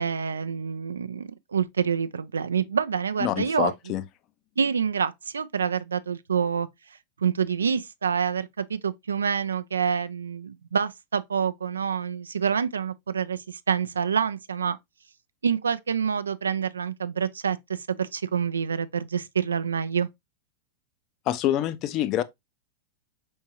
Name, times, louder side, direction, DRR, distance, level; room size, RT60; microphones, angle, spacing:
voice 1, 0.0-3.7 4.6-6.7 7.2-14.8 15.4-20.1, right 7 dB, 75° right, 0.3 m, -27 dB
voice 2, 3.2-4.0 21.3-22.2, left 12 dB, 40° left, 0.5 m, -26 dB
4.5 x 3.6 x 2.8 m
figure-of-eight pair, 95°, 0 cm